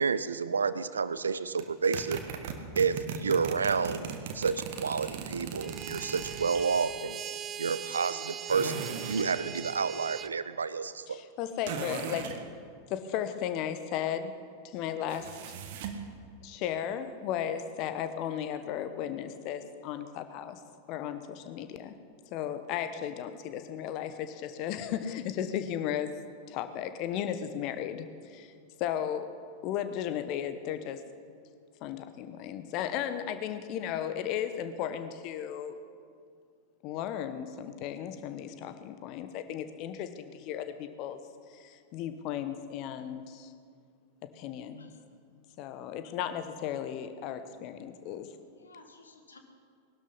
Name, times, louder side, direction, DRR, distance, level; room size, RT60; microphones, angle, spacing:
voice 1, 0.0-2.2 2.8-7.2 7.6-11.2, right 5 dB, 75° right, 15 dB, 0.6 m, -30 dB
sound 1, 1.6-6.6 8.5-9.3 11.6-12.4 15.1-16.1, right 7 dB, 50° right, 1.4 m, -38 dB
sound 2, 5.6-10.3, right 9 dB, 25° right, 0.5 m, -40 dB
voice 2, 11.1-12.3 12.9-14.3 14.6-15.3 16.4-20.6 20.9-21.9 22.3-26.1 26.5-28.5 28.8-29.3 29.6-31.0 31.8-35.8 36.8-41.2 41.5-43.5 44.3-44.9 45.6-48.3, left 9 dB, 40° left, 10 dB, 1.1 m, -35 dB
voice 3, 44.8-45.1 48.5-49.4, left 3 dB, 75° left, 5 dB, 1.7 m, -56 dB
19.5 x 12.0 x 5.6 m, 2.2 s
figure-of-eight pair, 90°, 0 cm